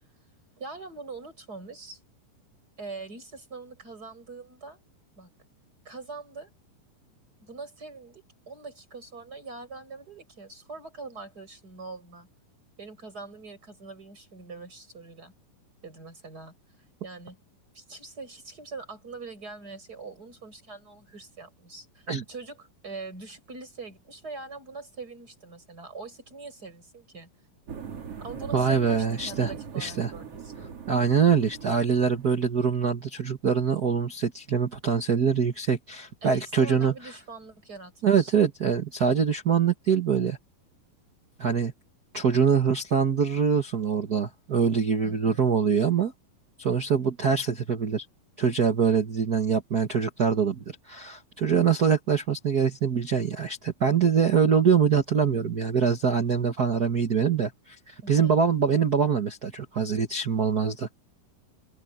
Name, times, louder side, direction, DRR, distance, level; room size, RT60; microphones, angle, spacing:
voice 1, 0.6-2.0 2.8-4.8 5.2-5.3 5.9-6.5 7.4-12.3 12.8-15.3 15.8-16.5 17.0-17.4 17.7-27.3 28.2-30.7 36.2-38.3 45.0-45.5 58.0-58.4, right 3 dB, 25° right, 7.3 m, -43 dB
sound 1, 27.7-32.6, right 6 dB, 45° right, 3.3 m, -41 dB
voice 2, 28.5-29.5 29.8-30.1 30.9-36.9 38.0-40.4 41.4-41.7 42.1-46.1 46.6-48.0 48.4-60.9, right 6 dB, 80° right, 0.8 m, -24 dB
omnidirectional pair, 4.1 m